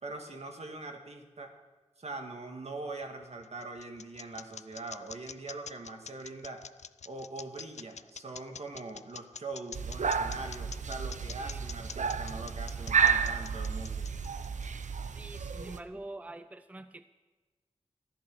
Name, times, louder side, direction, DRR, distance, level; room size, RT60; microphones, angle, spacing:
voice 1, 0.0-1.5 2.0-6.7 7.1-14.1, right 3 dB, 60° right, 4 dB, 1.7 m, -42 dB
sound 1, 3.2-15.1, left 6 dB, 70° left, 0.4 m, -45 dB
sound 2, 9.7-15.8, right 6 dB, 90° right, 0.6 m, -31 dB
voice 2, 15.1-17.1, right 2 dB, 10° right, 10 dB, 0.5 m, -45 dB
14.0 x 11.0 x 6.1 m, 1.3 s
wide cardioid pair, 90°, 12 cm